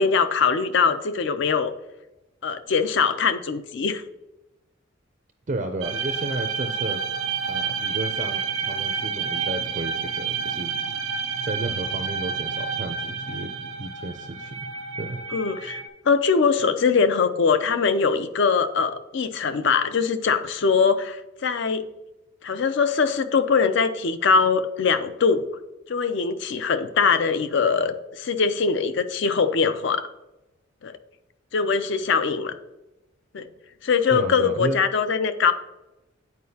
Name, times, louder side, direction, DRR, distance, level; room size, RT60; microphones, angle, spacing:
voice 1, 0.0-1.7 2.4-4.0 15.3-21.9 22.4-25.5 25.9-30.1 30.8-30.9 31.5-32.5 33.3-33.5 33.8-35.5, left 5 dB, 55° left, 11 dB, 0.5 m, -22 dB
voice 2, 5.5-7.0 7.5-10.7 11.4-14.6 15.0-15.2 34.1-34.8, right 2 dB, 35° right, 6 dB, 0.4 m, -32 dB
sound 1, 5.8-15.9, right 6 dB, 85° right, 0.7 m, -29 dB
9.6 x 4.6 x 2.8 m, 0.98 s
head